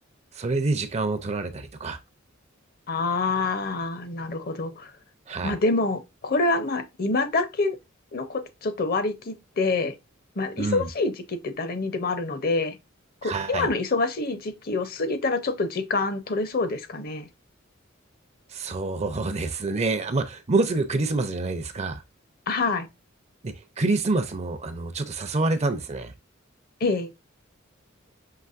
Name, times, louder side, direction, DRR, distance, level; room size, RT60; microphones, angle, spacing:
voice 1, 0.3-2.0 5.3-5.6 10.6-10.9 13.2-13.7 18.5-22.0 23.4-26.1, right 3 dB, 35° right, 0.6 m, -27 dB
voice 2, 2.9-4.9 5.4-7.8 8.1-9.9 10.4-12.8 13.2-17.3 22.5-22.9 26.8-27.1, left 3 dB, 45° left, 0.7 m, -26 dB
5.8 x 3.0 x 2.5 m
head